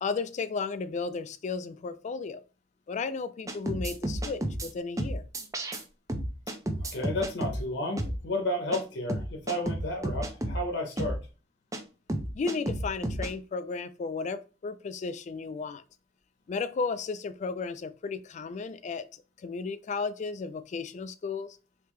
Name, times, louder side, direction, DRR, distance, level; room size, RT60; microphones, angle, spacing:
voice 1, 0.0-2.4 2.9-5.2 12.3-15.8 16.5-19.1 19.4-21.6, left 4 dB, 40° left, 0.3 m, -34 dB
sound 1, 3.5-4.7 5.0-5.8 6.1-7.6 8.0-8.2 8.7-8.8 9.1-10.6 11.0-11.2 11.7-11.8 12.1-13.3, right 1 dB, 20° right, 0.5 m, -31 dB
voice 2, 6.9-11.2, left 1 dB, 65° left, 0.8 m, -32 dB
3.5 x 2.8 x 3.1 m
head